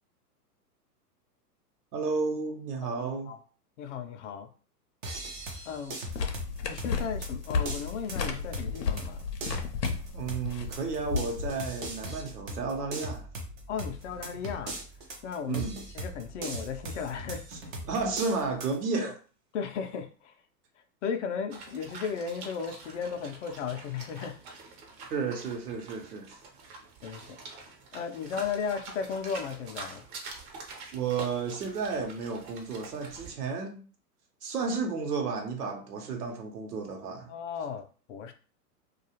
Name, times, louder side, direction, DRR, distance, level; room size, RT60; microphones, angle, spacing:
voice 1, 1.9-3.3 10.1-13.3 15.5-15.8 17.9-19.1 25.1-26.3 30.9-33.8 34.4-37.3, right 4 dB, 75° right, 3 dB, 0.9 m, -32 dB
voice 2, 2.8-3.4 3.8-4.5 5.6-6.0 6.6-9.2 13.7-14.8 15.2-15.7 15.9-17.4 19.0-19.1 19.5-20.3 21.0-24.4 27.0-27.7 27.9-30.0 37.3-37.8 38.1-38.3, left 6 dB, 50° left, 6 dB, 0.5 m, -35 dB
sound 1, 5.0-18.8, right 1 dB, 20° right, 0.4 m, -40 dB
sound 2, 6.1-11.6, left 5 dB, 90° left, 0.7 m, -33 dB
sound 3, 21.5-33.3, right 4 dB, 40° right, 0.8 m, -46 dB
2.3 x 2.3 x 2.9 m, 0.38 s
hypercardioid pair, 110°, 47 cm